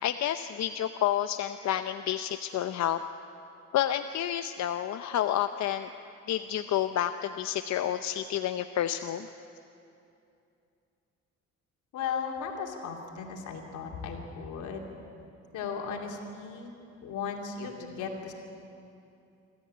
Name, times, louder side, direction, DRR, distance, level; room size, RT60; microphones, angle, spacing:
voice 1, 0.0-3.0 3.7-5.9 6.3-9.3, left 11 dB, 65° left, 9 dB, 0.7 m, -29 dB
voice 2, 11.9-14.9 15.5-16.7 17.0-18.3, left 6 dB, 85° left, 1 dB, 2.9 m, -36 dB
26.0 x 13.5 x 8.7 m, 2.6 s
cardioid pair, 90°, 30 cm